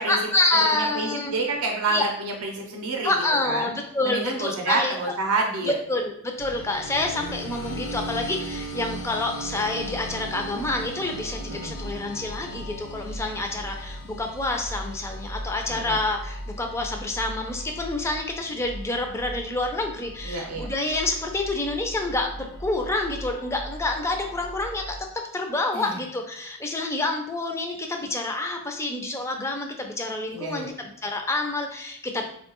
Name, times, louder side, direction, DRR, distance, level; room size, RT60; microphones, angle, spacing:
voice 1, 0.1-1.3 1.9-2.0 3.0-4.9 5.6-25.0 25.3-32.3, left 2 dB, 10° left, 3 dB, 0.3 m, -28 dB
voice 2, 0.7-3.1 3.4-3.7 4.0-5.7 11.5-11.8 15.7-16.0 20.2-20.7 25.7-26.0 30.3-30.7, right 3 dB, 75° right, 1 dB, 0.5 m, -28 dB
sound 1, 6.4-25.0, equal, 75° left, 0.6 m, -37 dB
3.7 x 2.1 x 2.8 m, 0.71 s
head